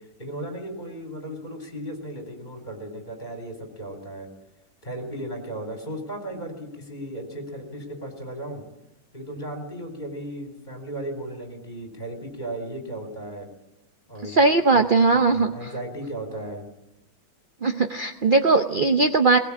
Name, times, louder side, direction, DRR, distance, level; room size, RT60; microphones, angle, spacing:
voice 1, 0.2-4.3 4.8-8.6 9.1-13.5 14.1-14.4 14.7-14.9 15.2-16.6, right 1 dB, 20° left, 4 dB, 4.5 m, -35 dB
voice 2, 14.3-15.7 17.6-19.4, right 3 dB, 50° right, 7 dB, 0.6 m, -19 dB
20.5 x 20.0 x 8.7 m, 0.94 s
omnidirectional pair, 2.1 m